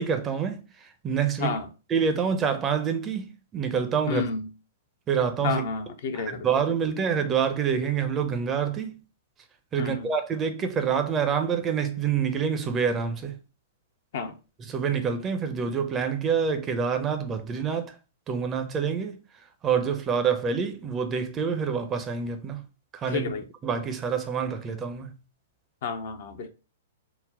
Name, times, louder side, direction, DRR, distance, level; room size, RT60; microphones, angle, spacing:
voice 1, 0.0-1.6 1.9-4.3 5.1-5.6 6.1-9.0 9.7-13.4 14.6-17.9 18.3-19.2 19.6-22.6 22.9-23.3 23.6-25.2, right 6 dB, 20° right, 0.5 m, -27 dB
voice 2, 4.1-4.5 5.4-6.5 9.8-10.1 14.1-14.4 23.1-23.4 25.8-26.5, left 5 dB, 50° left, 0.5 m, -30 dB
3.9 x 2.0 x 3.7 m
figure-of-eight pair, 105°, 0 cm